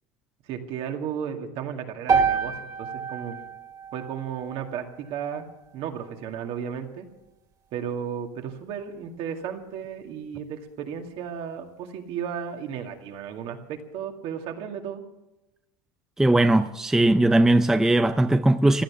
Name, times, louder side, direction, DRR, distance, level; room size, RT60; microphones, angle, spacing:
voice 1, 0.5-3.4 3.9-5.5 5.7-7.1 7.7-15.0, right 8 dB, 55° right, 2.2 m, -34 dB
sound 1, 2.1-6.3, right 6 dB, 35° right, 2.3 m, -29 dB
voice 2, 16.2-18.8, right 1 dB, 5° right, 0.5 m, -19 dB
15.5 x 12.0 x 7.1 m
supercardioid pair, 125°, 11 cm